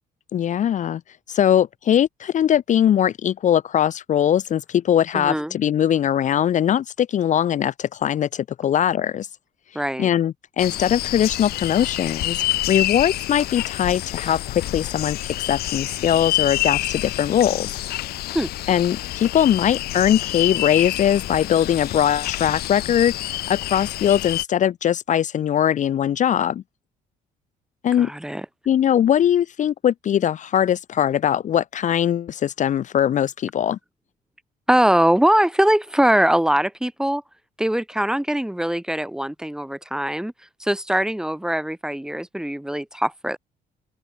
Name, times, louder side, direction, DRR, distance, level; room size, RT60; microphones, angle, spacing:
voice 1, 0.3-1.0 1.3-9.3 10.0-15.2 15.5-17.7 18.7-26.6 27.8-28.1 28.7-33.8, left 10 dB, 50° left, 0.8 m, -21 dB
voice 2, 5.1-5.5 9.8-10.1 18.3-18.5 28.0-28.4 34.7-37.2 37.6-40.3 40.6-43.4, right 1 dB, 5° right, 1.8 m, -21 dB
sound 1, 10.6-24.4, left 15 dB, 75° left, 1.0 m, -28 dB
open air
cardioid pair, 115°, 16 cm